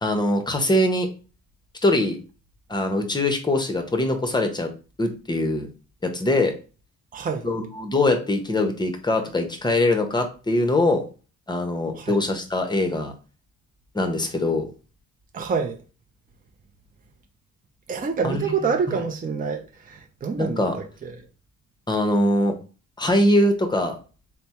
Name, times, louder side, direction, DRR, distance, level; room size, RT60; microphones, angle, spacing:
voice 1, 0.0-1.1 1.8-2.2 2.7-4.7 5.0-5.7 6.0-6.5 7.4-11.0 11.5-13.1 13.9-14.6 18.2-18.7 20.4-20.7 21.9-22.6 23.0-24.0, left 1 dB, 15° left, 0.8 m, -22 dB
voice 2, 7.1-7.5 12.0-12.2 15.3-15.8 17.9-21.2, right 5 dB, 30° right, 0.6 m, -27 dB
3.3 x 2.1 x 4.2 m
cardioid pair, 90°, 30 cm